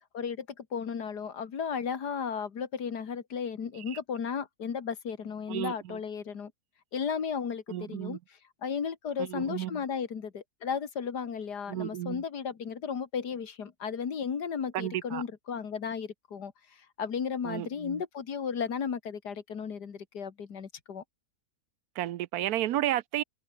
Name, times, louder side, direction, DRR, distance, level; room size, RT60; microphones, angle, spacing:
voice 1, 0.1-6.5 6.9-8.2 8.6-21.0, left 6 dB, 85° left, 2.4 m, -34 dB
voice 2, 5.5-6.0 7.7-8.2 9.2-9.7 11.7-12.2 14.7-15.2 17.4-18.0 22.0-23.2, right 13 dB, 75° right, 1.1 m, -32 dB
omnidirectional pair, 1.7 m